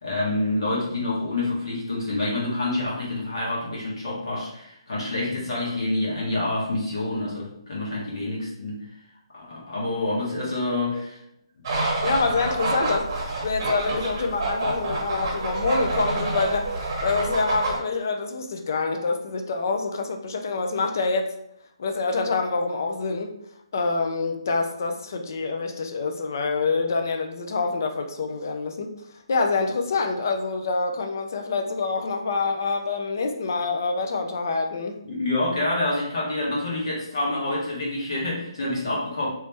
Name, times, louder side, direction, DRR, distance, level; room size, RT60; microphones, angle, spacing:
voice 1, 0.0-8.8 9.3-11.2 12.0-12.3 35.0-39.3, left 2 dB, 55° left, -5 dB, 1.3 m, -27 dB
sound 1, 11.6-17.8, right 2 dB, 30° right, 1.2 m, -28 dB
voice 2, 12.0-21.3 21.8-23.4 23.7-28.9 29.3-35.0, left 4 dB, 35° left, 4 dB, 0.4 m, -26 dB
3.0 x 2.8 x 3.4 m, 0.75 s
hypercardioid pair, 180°, 3 cm